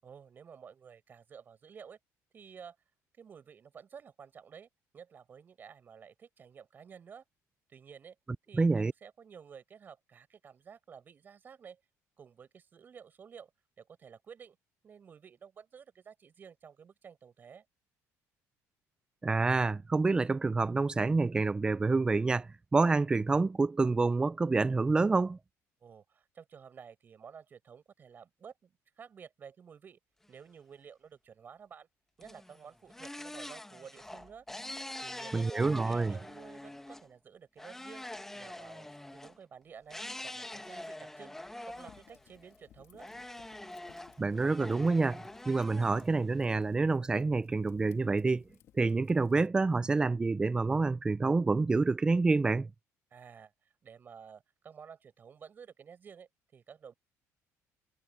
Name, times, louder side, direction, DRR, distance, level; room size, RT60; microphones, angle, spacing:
voice 1, 0.0-2.0 2.3-2.8 3.1-7.2 7.7-8.2 8.5-11.8 12.2-13.5 13.8-14.6 14.8-17.6 25.8-30.0 30.3-31.9 32.2-34.5 35.0-35.5 35.8-38.1 38.3-41.4 41.7-43.1 53.1-56.9, right 7 dB, 35° right, 7.6 m, -52 dB
voice 2, 8.6-8.9 19.2-25.4 35.3-36.1 44.2-48.4 48.7-52.7, right 3 dB, 15° right, 0.4 m, -28 dB
sound 1, 32.2-37.1 37.6-39.4 39.9-42.6 43.0-46.7, left 1 dB, 5° left, 1.2 m, -45 dB
Fire, 41.7-49.5, left 11 dB, 55° left, 2.5 m, -62 dB
cardioid pair, 145°, 6 cm